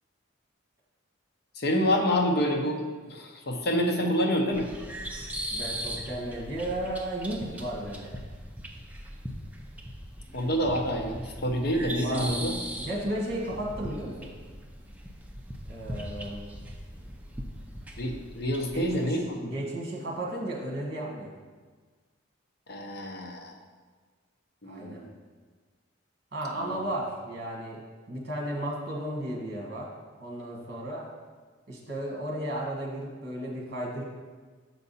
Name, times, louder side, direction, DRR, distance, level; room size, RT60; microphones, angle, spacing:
voice 1, 1.6-2.8 3.1-4.7 10.3-12.6 18.0-19.4 22.7-23.5 24.6-25.1 26.6-26.8, equal, 50° left, 2 dB, 0.8 m, -27 dB
sound 1, 4.5-19.1, equal, 10° right, 0.5 m, -39 dB
voice 2, 5.5-8.2 12.0-12.2 12.8-14.3 15.6-16.4 18.7-21.3 24.6-25.0 26.3-27.8 28.1-29.9 30.2-31.0 31.7-34.0, right 1 dB, 50° right, -2 dB, 1.4 m, -34 dB
6.8 x 4.8 x 4.1 m, 1.4 s
head